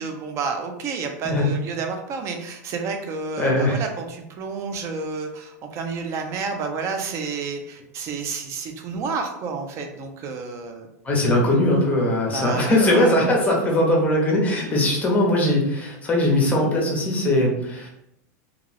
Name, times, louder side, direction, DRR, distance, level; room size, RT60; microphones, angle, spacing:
voice 1, 0.0-10.9 12.3-13.2 14.7-14.9, right 4 dB, 35° right, 5 dB, 0.5 m, -30 dB
voice 2, 3.4-3.8 11.0-17.9, left 1 dB, 15° left, -1 dB, 0.8 m, -20 dB
2.4 x 2.3 x 3.2 m, 0.80 s
supercardioid pair, 140°, 9 cm